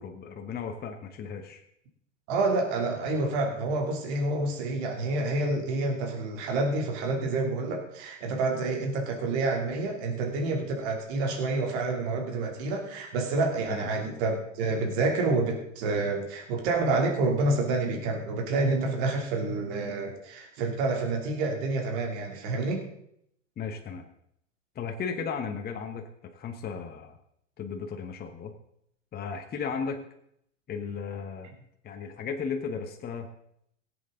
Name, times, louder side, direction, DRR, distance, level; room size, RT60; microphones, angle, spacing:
voice 1, 0.0-1.6 13.7-13.9 23.6-24.0 24.7-26.1 26.3-27.1 27.6-28.5 29.1-30.0 30.7-31.5 31.8-33.3, left 6 dB, 25° left, 3 dB, 1.3 m, -35 dB
voice 2, 2.3-22.8, right 3 dB, 60° right, 1 dB, 3.0 m, -28 dB
17.5 x 8.2 x 3.9 m, 0.73 s
hypercardioid pair, 110°, 38 cm